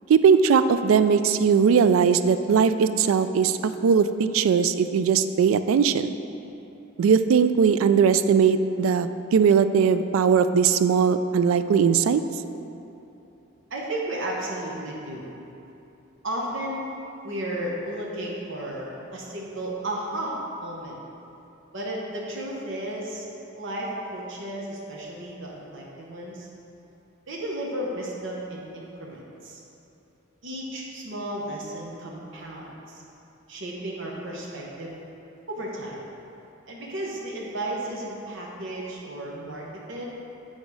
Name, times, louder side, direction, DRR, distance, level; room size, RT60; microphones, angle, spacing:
voice 1, 0.1-6.1 7.0-12.2, right 6 dB, 80° right, 11 dB, 0.3 m, -20 dB
voice 2, 13.7-15.2 16.2-16.8 17.2-21.0 21.7-23.3 23.6-26.5 27.3-29.6 30.4-33.0 33.5-34.9 35.5-36.0 36.7-40.1, right 1 dB, 65° right, -3 dB, 1.0 m, -33 dB
8.0 x 4.1 x 4.8 m, 2.9 s
head